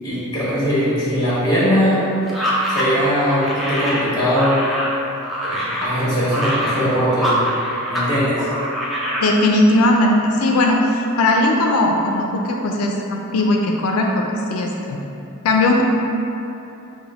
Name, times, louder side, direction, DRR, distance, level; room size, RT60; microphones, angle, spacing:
voice 1, 0.0-2.0 2.7-4.7 5.4-7.4 7.9-8.5, equal, 20° left, -10 dB, 1.3 m, -20 dB
sound 1, 2.3-8.1 8.4-9.3, equal, ahead, 0.5 m, -24 dB
voice 2, 9.2-15.0 15.4-15.8, left 1 dB, 85° left, 1 dB, 0.3 m, -18 dB
5.1 x 2.1 x 3.4 m, 2.9 s
head